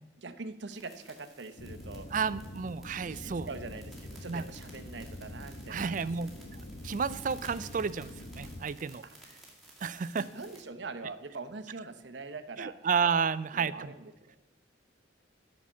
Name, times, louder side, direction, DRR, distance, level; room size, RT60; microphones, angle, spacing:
voice 1, 0.2-2.1 3.1-6.5 9.0-9.2 10.2-12.7 13.5-14.4, right 3 dB, 65° right, 8 dB, 0.8 m, -43 dB
sound 1, 0.7-10.6, right 1 dB, ahead, 2.3 m, -56 dB
sound 2, 1.6-8.6, left 1 dB, 45° left, 0.9 m, -45 dB
voice 2, 2.1-3.5 4.3-4.4 5.7-6.3 6.8-9.0 9.8-10.3 12.6-13.9, right 6 dB, 45° right, 16 dB, 0.4 m, -31 dB
9.9 x 5.9 x 7.0 m, 1.1 s
head